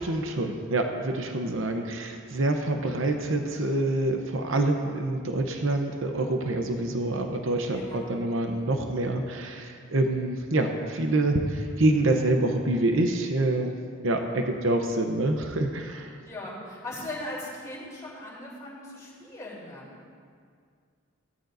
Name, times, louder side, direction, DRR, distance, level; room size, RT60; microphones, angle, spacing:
voice 1, 0.0-13.8 14.0-16.1, right 2 dB, 65° right, 4 dB, 0.8 m, -26 dB
voice 2, 7.7-8.7 14.3-14.4 16.2-20.0, left 1 dB, 15° left, -7 dB, 3.4 m, -39 dB
15.5 x 13.0 x 2.7 m, 2.1 s
head